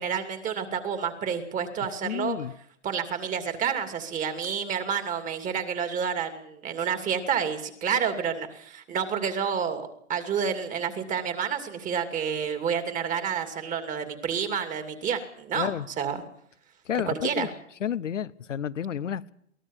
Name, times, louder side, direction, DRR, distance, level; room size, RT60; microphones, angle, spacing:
voice 1, 0.0-2.4 2.8-16.2 17.1-17.5, right 7 dB, 20° right, 8 dB, 2.7 m, -29 dB
voice 2, 2.0-2.5 15.5-15.9 16.9-17.5 17.8-19.3, left 9 dB, 85° left, 13 dB, 1.0 m, -30 dB
22.5 x 18.5 x 7.2 m, 0.67 s
hypercardioid pair, 130°, 36 cm